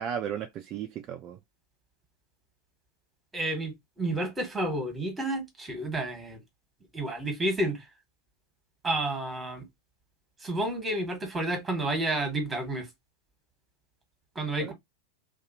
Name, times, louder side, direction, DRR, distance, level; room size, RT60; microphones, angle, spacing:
voice 1, 0.0-1.4 14.6-14.7, right 8 dB, 35° right, 0.3 m, -35 dB
voice 2, 3.3-6.4 6.9-7.8 8.8-9.6 10.4-12.9 14.3-14.7, right 1 dB, 10° right, 1.2 m, -30 dB
2.7 x 2.3 x 2.7 m
figure-of-eight pair, 90°, 0 cm